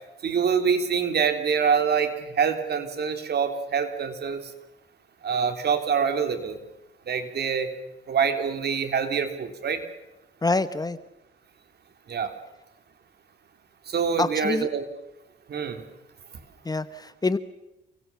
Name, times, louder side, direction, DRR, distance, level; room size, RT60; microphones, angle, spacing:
voice 1, 0.2-4.4 5.2-6.6 7.1-7.7 8.1-9.8 12.1-12.3 13.9-14.9 15.5-15.8, right 6 dB, 55° right, 7 dB, 3.5 m, -25 dB
voice 2, 10.4-11.0 14.2-14.7 16.6-17.4, left 3 dB, 20° left, 13 dB, 1.2 m, -26 dB
29.0 x 23.0 x 7.1 m, 0.92 s
cardioid pair, 90°, 20 cm